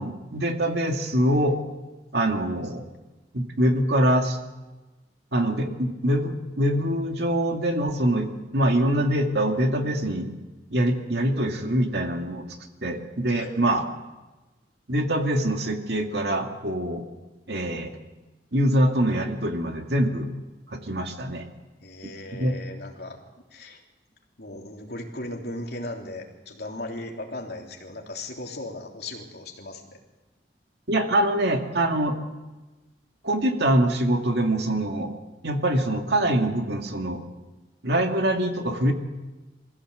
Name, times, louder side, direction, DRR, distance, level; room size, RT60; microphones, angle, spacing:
voice 1, 0.0-1.6 2.1-2.9 3.3-4.4 5.3-10.3 10.7-12.5 12.8-13.9 14.9-17.0 17.5-17.9 18.5-20.3 20.7-21.4 22.0-22.5 30.9-32.2 33.2-35.1 35.4-37.2 37.8-38.9, right 1 dB, 65° right, 4 dB, 2.3 m, -24 dB
voice 2, 21.8-23.2 23.5-23.8 24.4-30.0, left 1 dB, 60° left, 0 dB, 3.3 m, -37 dB
23.0 x 15.5 x 8.0 m, 1.2 s
head